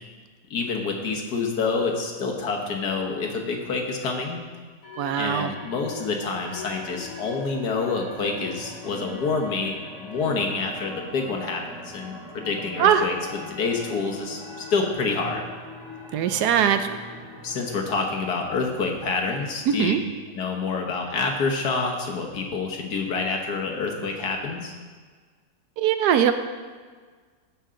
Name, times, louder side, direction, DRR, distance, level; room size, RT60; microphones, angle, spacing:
voice 1, 0.5-4.4 5.2-13.2 13.5-15.4 17.4-19.9 20.3-24.7, left 4 dB, 65° left, 2 dB, 1.7 m, -27 dB
sound 1, 4.8-18.2, left 2 dB, 40° left, 3.1 m, -41 dB
voice 2, 5.0-5.5 12.8-13.1 16.1-16.9 19.7-20.0 25.8-26.3, right 9 dB, 75° right, 9 dB, 1.1 m, -21 dB
16.0 x 5.8 x 3.7 m, 1.5 s
omnidirectional pair, 1.9 m